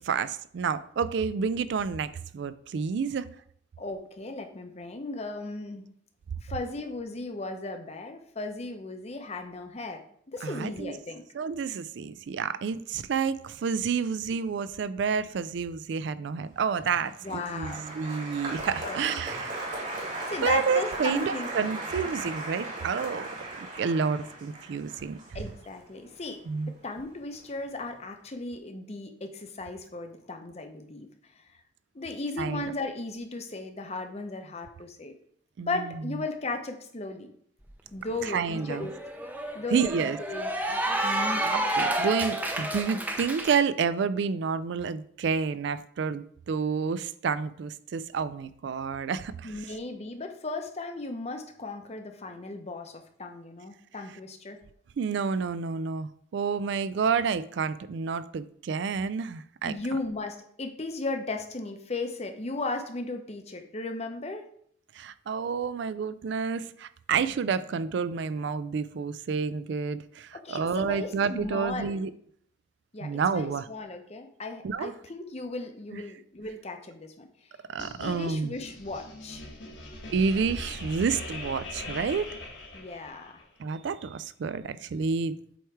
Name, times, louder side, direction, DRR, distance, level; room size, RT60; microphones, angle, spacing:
voice 1, 0.0-3.3 10.4-10.9 11.3-19.7 20.4-23.3 23.6-25.2 26.5-26.7 32.4-32.7 35.6-36.1 38.2-38.9 39.7-40.2 40.9-49.7 55.0-59.7 64.9-72.1 73.0-73.7 74.6-74.9 75.9-76.0 77.7-78.5 80.1-82.3 83.6-85.4, right 5 dB, 60° right, 14 dB, 0.3 m, -29 dB
voice 2, 3.8-5.9 6.4-11.2 17.2-17.9 18.8-19.0 20.3-21.5 25.3-31.1 31.9-35.1 35.6-37.3 37.9-38.9 39.5-40.5 41.0-41.7 49.4-54.6 59.6-64.4 70.3-72.0 72.9-77.3 78.0-79.4 82.7-83.4, left 3 dB, 35° left, 5 dB, 0.7 m, -36 dB
Applause, 16.7-27.1 27.3-27.9, right 2 dB, 40° right, 1.8 m, -37 dB
Cheering / Applause, 37.7-37.8 38.1-43.6, right 1 dB, 10° right, 0.6 m, -30 dB
sound 1, 77.8-83.4, left 2 dB, 60° left, 1.3 m, -41 dB
7.9 x 3.1 x 4.6 m, 0.63 s
head